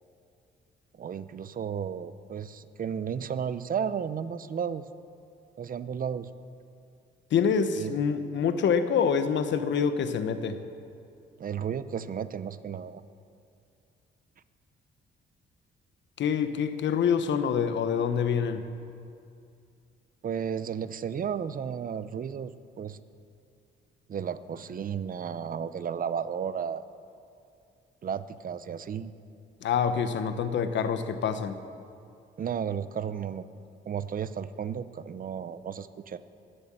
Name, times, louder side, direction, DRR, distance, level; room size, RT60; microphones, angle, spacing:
voice 1, 0.9-4.9 5.6-6.3 7.7-7.9 11.4-13.0 20.2-23.0 24.1-26.8 28.0-29.1 32.4-33.5 33.9-36.2, right 7 dB, 45° right, 14 dB, 0.7 m, -33 dB
voice 2, 7.3-10.6 16.2-18.6 29.6-31.6, left 7 dB, 65° left, 10 dB, 1.1 m, -26 dB
21.0 x 7.9 x 7.7 m, 2.5 s
cardioid pair, 90°, 20 cm